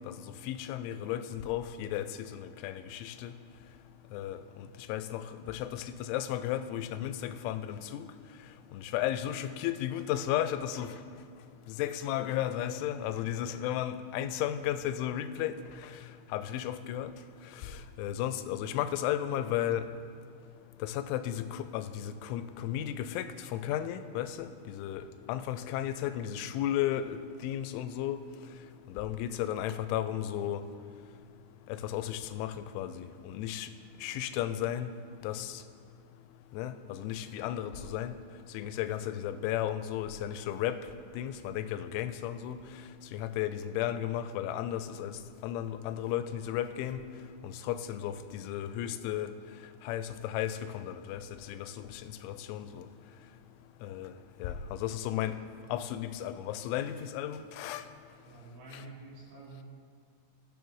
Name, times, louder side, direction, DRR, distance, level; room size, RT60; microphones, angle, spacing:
voice 1, 0.0-3.3 4.1-8.1 8.7-11.0 11.8-15.9 16.3-17.1 17.6-19.9 20.8-28.2 28.9-30.6 31.7-33.7 34.0-34.9 35.2-35.6 36.5-38.2 38.5-40.8 41.1-42.6 43.1-47.0 47.4-49.3 49.8-52.9 53.8-54.1 54.4-55.4 55.7-57.8 58.7-58.8, left 11 dB, 90° left, 11 dB, 3.0 m, -34 dB
voice 2, 58.3-59.6, right 2 dB, 85° right, -5 dB, 4.7 m, -49 dB
20.0 x 6.8 x 3.1 m, 2.2 s
omnidirectional pair, 5.3 m